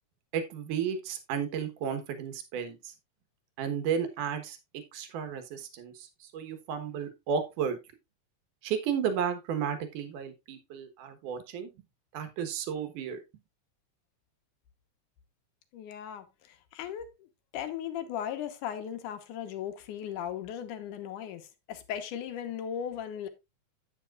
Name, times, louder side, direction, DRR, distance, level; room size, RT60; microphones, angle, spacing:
voice 1, 0.3-2.9 3.6-7.8 8.6-11.7 12.1-13.2, right 7 dB, 85° right, 2.8 m, -33 dB
voice 2, 15.7-17.1 17.5-23.3, left 9 dB, 85° left, 2.7 m, -37 dB
9.8 x 8.9 x 2.4 m
omnidirectional pair, 3.5 m